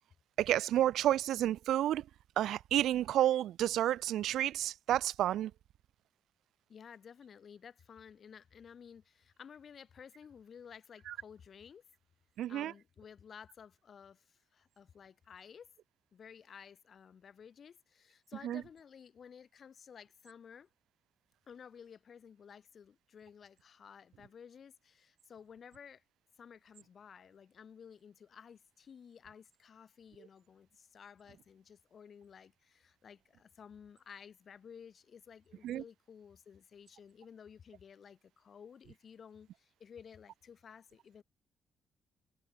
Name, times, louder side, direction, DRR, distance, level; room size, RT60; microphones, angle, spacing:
voice 1, 0.4-2.0 2.4-5.5 11.1-11.2 12.4-12.7 18.4-18.6 35.6-35.8, right 12 dB, 80° right, 0.3 m, -30 dB
voice 2, 6.7-11.8 12.5-15.7 16.1-20.7 21.5-26.0 26.4-41.2, left 7 dB, 50° left, 2.8 m, -54 dB
cardioid pair, 90°, 0 cm